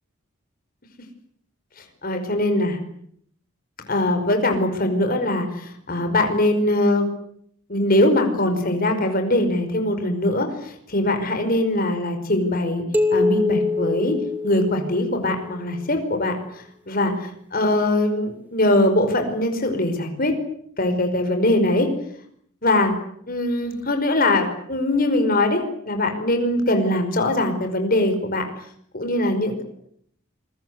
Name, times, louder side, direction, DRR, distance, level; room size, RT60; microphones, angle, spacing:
voice 1, 2.0-2.8 3.9-7.1 7.7-12.8 13.1-14.2 14.4-20.3 20.8-21.9 22.6-22.9 23.3-28.4 28.9-29.6, left 1 dB, 40° left, 6 dB, 5.2 m, -22 dB
sound 1, 12.9-15.3, left 3 dB, 5° right, 2.6 m, -23 dB
27.5 x 22.5 x 8.2 m, 0.68 s
head